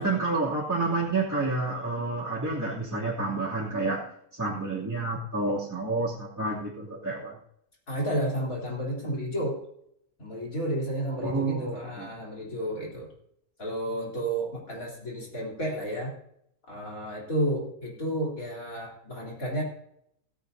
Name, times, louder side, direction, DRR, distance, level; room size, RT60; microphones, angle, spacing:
voice 1, 0.0-4.0 4.3-7.4 11.2-12.1, right 3 dB, 10° right, -7 dB, 2.7 m, -29 dB
voice 2, 7.9-9.6 10.2-13.1 13.6-16.1 16.7-19.6, right 1 dB, 65° left, -3 dB, 4.0 m, -31 dB
17.0 x 15.5 x 2.7 m, 0.73 s
omnidirectional pair, 1.6 m